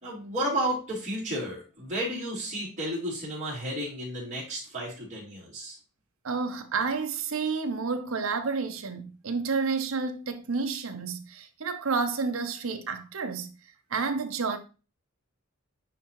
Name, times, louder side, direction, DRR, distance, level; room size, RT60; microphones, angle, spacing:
voice 1, 0.0-5.8, right 1 dB, 35° right, 3.9 m, -32 dB
voice 2, 6.2-13.5 13.9-14.6, right 4 dB, 75° right, 0.8 m, -30 dB
9.6 x 3.6 x 3.0 m
head